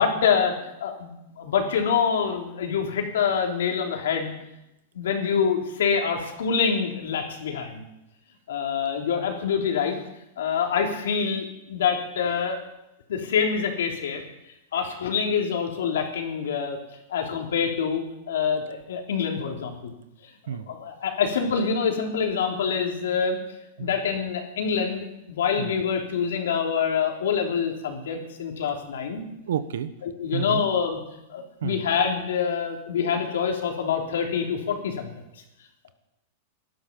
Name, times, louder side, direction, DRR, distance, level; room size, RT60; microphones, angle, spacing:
voice 1, 0.0-4.3 4.9-7.8 8.5-10.0 10.4-12.6 13.1-14.2 14.7-16.8 17.1-19.9 20.5-23.4 23.8-29.2 30.0-31.0 31.3-35.1, left 6 dB, 90° left, 2 dB, 3.5 m, -26 dB
voice 2, 29.5-29.9 30.3-30.6 31.6-31.8, right 9 dB, 85° right, 13 dB, 1.2 m, -29 dB
18.0 x 12.0 x 5.4 m, 0.87 s
supercardioid pair, 150°, 0 cm